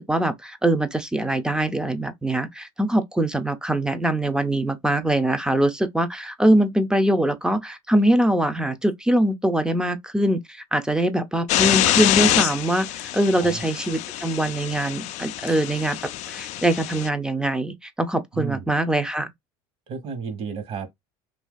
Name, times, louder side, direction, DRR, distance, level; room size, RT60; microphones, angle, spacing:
voice 1, 0.0-12.9 13.1-16.0 16.3-19.3, right 1 dB, 5° right, 0.6 m, -23 dB
sound 1, 11.5-17.1, left 14 dB, 65° left, 0.4 m, -25 dB
voice 2, 18.3-18.7 19.9-20.9, right 5 dB, 50° right, 1.2 m, -32 dB
2.7 x 2.6 x 3.8 m
supercardioid pair, 110°, 13 cm